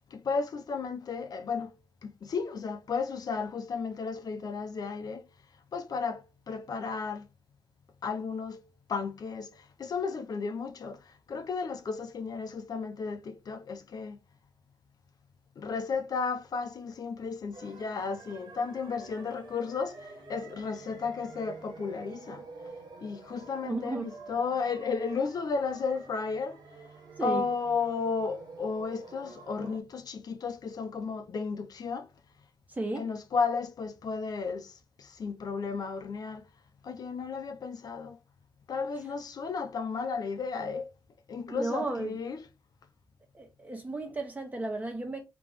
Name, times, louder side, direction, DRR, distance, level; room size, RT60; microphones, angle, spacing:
voice 1, 0.1-1.8 2.0-5.2 5.7-7.3 8.0-14.2 15.6-22.4 23.0-26.6 27.2-32.1 33.0-36.5 36.8-38.2 38.7-40.9 41.3-42.4, left 5 dB, 60° left, 0.7 m, -34 dB
sound 1, 17.5-29.8, right 3 dB, 75° right, 1.1 m, -48 dB
voice 2, 23.6-24.1 27.2-27.5 29.6-29.7 32.7-33.1 41.5-42.2 43.3-45.2, right 2 dB, 20° right, 1.4 m, -34 dB
3.5 x 2.9 x 3.5 m
cardioid pair, 95°, 7 cm